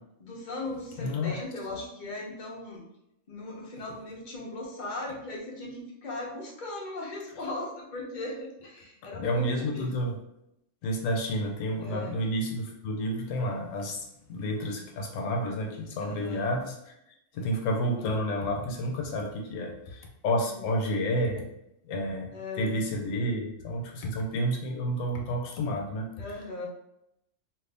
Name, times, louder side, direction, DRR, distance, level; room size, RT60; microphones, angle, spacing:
voice 1, 0.2-2.8 3.3-9.9 11.8-12.2 16.0-16.4 20.3-20.7 22.3-22.8 26.2-26.7, left 2 dB, 45° left, -2 dB, 0.8 m, -38 dB
voice 2, 1.0-1.4 9.1-10.2 10.8-16.9 17.3-21.5 21.8-22.3 22.5-26.4, equal, 85° left, 1 dB, 1.0 m, -30 dB
2.6 x 2.5 x 3.3 m, 0.81 s
omnidirectional pair, 1.4 m